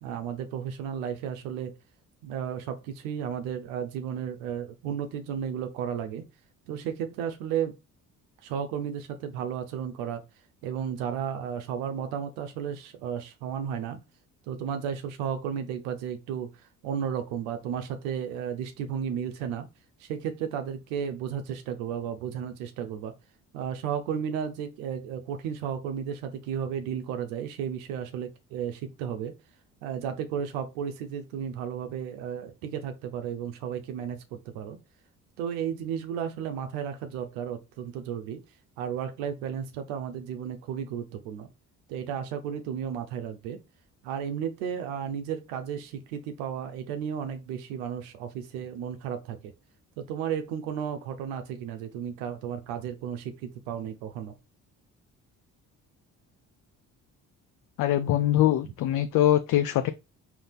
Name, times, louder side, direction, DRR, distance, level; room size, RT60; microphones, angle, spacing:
voice 1, 0.0-1.7 2.2-6.2 6.7-7.7 8.4-10.2 10.6-14.0 14.5-19.7 20.0-23.1 23.5-29.3 29.8-34.8 35.4-38.4 38.8-41.5 41.9-43.6 44.0-49.5 50.0-54.4, right 8 dB, 85° right, 0.6 m, -33 dB
voice 2, 57.8-59.9, left 12 dB, 55° left, 0.4 m, -23 dB
3.9 x 2.8 x 3.4 m
hypercardioid pair, 55°, 39 cm